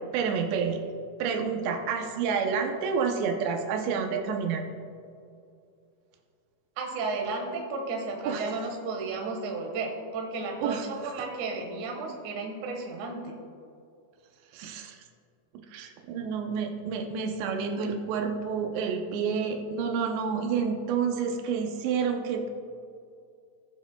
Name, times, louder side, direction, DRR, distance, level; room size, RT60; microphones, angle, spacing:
voice 1, 0.1-0.8 1.2-4.6 8.3-8.4 10.6-10.8 14.5-15.0 15.7-22.5, right 6 dB, 85° right, 3 dB, 3.0 m, -29 dB
voice 2, 6.8-13.3, right 3 dB, 60° right, 1 dB, 2.3 m, -33 dB
20.0 x 7.3 x 2.3 m, 2.4 s
omnidirectional pair, 4.9 m